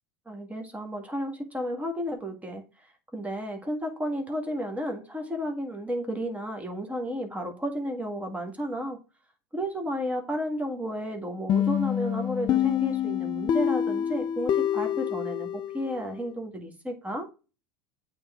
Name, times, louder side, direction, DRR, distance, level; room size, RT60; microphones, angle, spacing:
voice 1, 0.3-9.0 9.5-17.3, equal, 10° right, 1.7 m, -32 dB
sound 1, 11.5-16.2, left 10 dB, 35° left, 0.5 m, -27 dB
8.6 x 3.5 x 3.6 m
hypercardioid pair, 90°, 13 cm